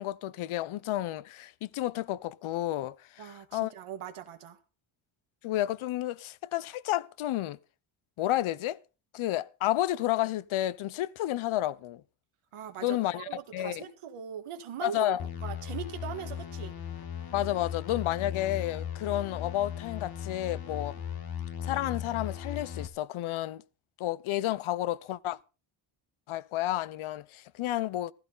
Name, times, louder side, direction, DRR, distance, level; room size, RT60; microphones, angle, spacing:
voice 1, 0.0-3.7 5.4-7.6 8.2-8.8 9.1-12.0 12.8-13.8 14.8-15.2 17.3-21.0 21.6-23.6 24.0-25.4 26.3-28.1, left 14 dB, 75° left, 0.7 m, -31 dB
voice 2, 3.2-4.6 12.5-15.1 15.4-16.7, right 9 dB, 85° right, 1.7 m, -40 dB
sound 1, 15.2-22.9, left 9 dB, 45° left, 1.5 m, -37 dB
15.0 x 13.0 x 3.8 m
cardioid pair, 120°, 50 cm